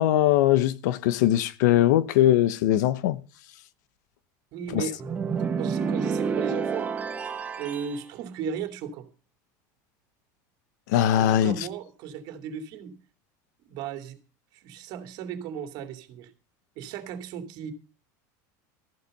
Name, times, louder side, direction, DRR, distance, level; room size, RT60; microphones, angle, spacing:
voice 1, 0.0-3.2 4.7-4.8 10.9-11.5, left 12 dB, 80° left, 0.9 m, -21 dB
voice 2, 4.5-5.2 5.6-6.9 7.6-9.1 11.2-13.0 13.6-14.2 14.6-16.3 16.8-17.7, right 7 dB, 45° right, 2.6 m, -35 dB
sound 1, 5.0-8.0, right 5 dB, 15° right, 1.1 m, -29 dB
14.0 x 11.5 x 5.4 m
supercardioid pair, 165°, 9 cm